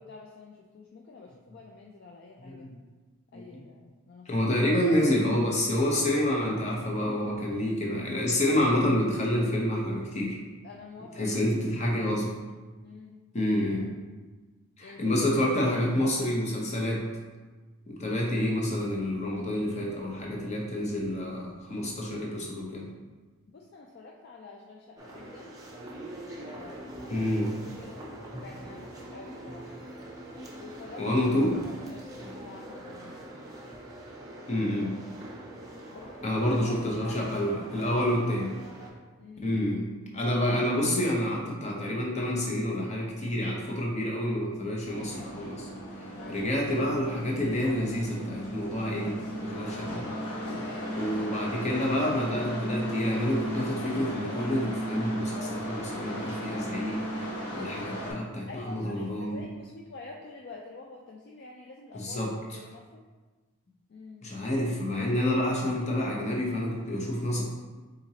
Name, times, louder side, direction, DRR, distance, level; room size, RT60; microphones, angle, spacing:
voice 1, 0.0-2.7 3.3-4.5 10.6-11.9 12.8-13.2 14.8-15.0 15.4-15.6 16.0-16.4 23.5-25.5 26.4-27.2 27.6-29.8 30.6-31.1 31.6-33.1 35.9-36.4 36.8-37.7 39.2-39.5 46.1-46.4 50.4-51.3 58.5-63.0 63.9-64.3, left 3 dB, 45° left, -1 dB, 0.3 m, -48 dB
voice 2, 2.5-2.8 3.3-3.6 4.3-10.4 11.2-12.3 13.3-13.9 14.8-17.0 17.9-22.9 27.1-27.5 31.0-31.6 34.5-34.9 36.2-38.5 39.4-39.8 40.1-45.7 46.3-50.0 51.0-57.3 57.5-59.4 61.9-62.3 64.2-67.4, left 1 dB, 30° left, -2 dB, 0.7 m, -28 dB
sound 1, 25.0-38.9, right 1 dB, 15° right, 0.6 m, -43 dB
sound 2, 44.8-58.1, equal, 85° left, 1.1 m, -35 dB
4.3 x 3.9 x 2.8 m, 1.3 s
head